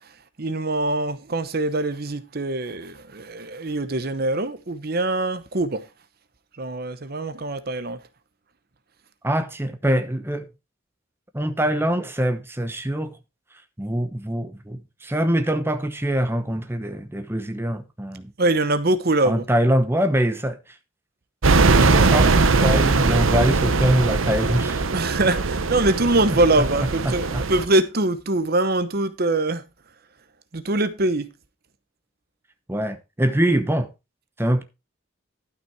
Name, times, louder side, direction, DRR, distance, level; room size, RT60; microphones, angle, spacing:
voice 1, 0.4-5.8 6.6-8.0 18.4-19.4 24.9-29.6 30.5-31.3, right 2 dB, 50° right, 0.9 m, -23 dB
voice 2, 9.2-10.5 11.3-13.2 13.8-18.3 19.2-20.6 21.8-24.9 26.6-26.7 27.0-27.4 32.7-33.9 34.4-34.6, equal, 10° right, 0.9 m, -23 dB
sound 1, 21.4-27.7, right 3 dB, 80° right, 0.9 m, -20 dB
12.0 x 6.0 x 4.6 m
head